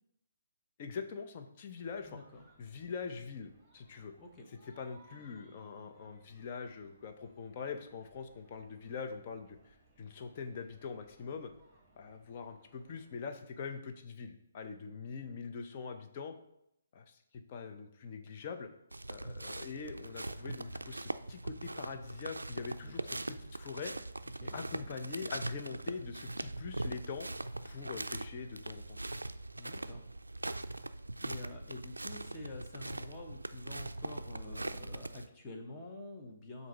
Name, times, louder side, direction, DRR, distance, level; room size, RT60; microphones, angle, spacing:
voice 1, 0.8-2.2 2.6-4.1 4.8-11.5 12.0-16.3 16.9-18.7 19.1-23.9 24.5-27.3 27.6-29.0, left 5 dB, 35° left, 5 dB, 0.7 m, -43 dB
sound 1, 1.8-13.2, right 2 dB, 10° right, 1.6 m, -66 dB
voice 2, 2.0-2.5 4.2-4.5 5.1-5.3 22.7-23.2 24.4-24.6 29.6-30.0 31.2-36.7, left 2 dB, 20° left, 0 dB, 1.0 m, -48 dB
sound 2, 18.9-35.3, right 2 dB, 80° right, 0.3 m, -41 dB
7.4 x 2.7 x 5.3 m, 0.77 s
figure-of-eight pair, 135°, 0 cm